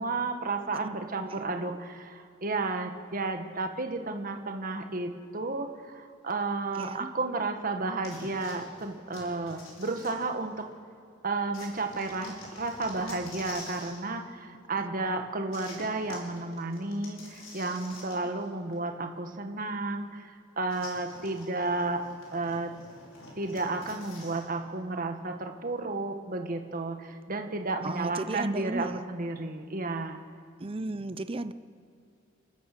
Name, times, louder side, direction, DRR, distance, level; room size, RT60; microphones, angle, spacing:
voice 1, 0.0-10.7 11.2-22.0 22.3-22.7 23.4-30.2, right 3 dB, 45° right, 5 dB, 1.6 m, -32 dB
voice 2, 1.2-1.8 6.7-7.1 14.8-14.9 18.2-18.3 27.8-29.1 30.6-31.5, right 2 dB, 30° right, 12 dB, 0.7 m, -35 dB
sound 1, 8.0-10.7 11.5-14.0 15.5-18.5 18.7-18.8 20.7-24.5, left 2 dB, 75° left, 5.7 m, -47 dB
30.0 x 14.5 x 6.8 m, 2.5 s
head